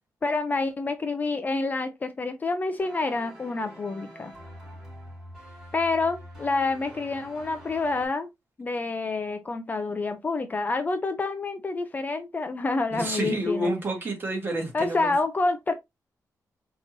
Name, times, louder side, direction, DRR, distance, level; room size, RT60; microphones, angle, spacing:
voice 1, 0.2-4.3 5.7-8.3 8.6-13.7 14.7-15.7, left 3 dB, 25° left, 0.4 m, -28 dB
sound 1, 2.8-8.1, equal, 10° right, 3.1 m, -45 dB
voice 2, 12.9-15.1, right 1 dB, 35° right, 1.6 m, -29 dB
5.0 x 2.9 x 2.6 m
wide cardioid pair, 155°, 6 cm